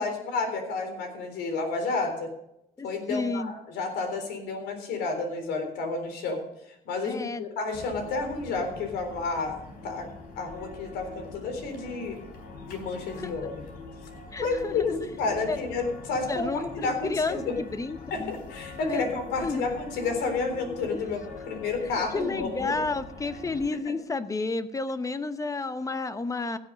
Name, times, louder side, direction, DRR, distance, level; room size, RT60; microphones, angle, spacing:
voice 1, 0.0-2.3 2.8-6.4 6.9-9.6 9.8-10.0 10.4-12.2 12.7-13.6 14.4-14.9 15.2-17.5 18.1-21.2 21.5-22.7 23.9-24.0, left 3 dB, 85° left, 5 dB, 3.8 m, -30 dB
voice 2, 2.8-3.5 7.0-7.5 13.2-13.4 14.3-15.1 15.5-15.6 16.3-18.3 18.8-19.0 19.4-19.7 20.9-21.1 21.9-26.6, left 3 dB, 20° left, 12 dB, 0.9 m, -31 dB
sound 1, 7.7-23.7, left 3 dB, 65° left, 4.5 m, -43 dB
16.5 x 7.7 x 5.2 m, 0.81 s
cardioid pair, 110°, 17 cm